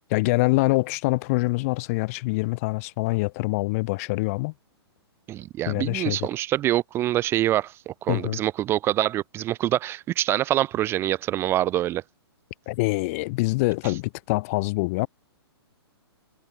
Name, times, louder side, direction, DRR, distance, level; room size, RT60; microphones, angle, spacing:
voice 1, 0.1-4.5 5.7-6.3 8.1-8.4 12.7-15.1, left 24 dB, 35° left, 1.2 m, -25 dB
voice 2, 5.3-12.0, right 13 dB, 15° right, 0.6 m, -25 dB
hypercardioid pair, 155°, 14 cm